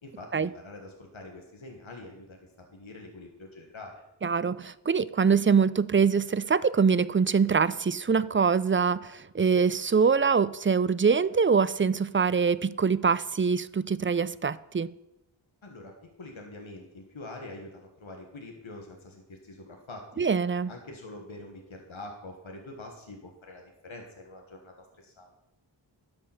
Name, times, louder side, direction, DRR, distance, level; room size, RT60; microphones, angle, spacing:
voice 1, 0.0-4.0 15.6-15.9 16.2-20.3 20.7-25.3, left 2 dB, 80° left, 1.6 m, -45 dB
voice 2, 4.2-14.9 20.2-20.7, right 5 dB, 25° right, 0.4 m, -24 dB
12.0 x 5.4 x 7.1 m
wide cardioid pair, 50°, 47 cm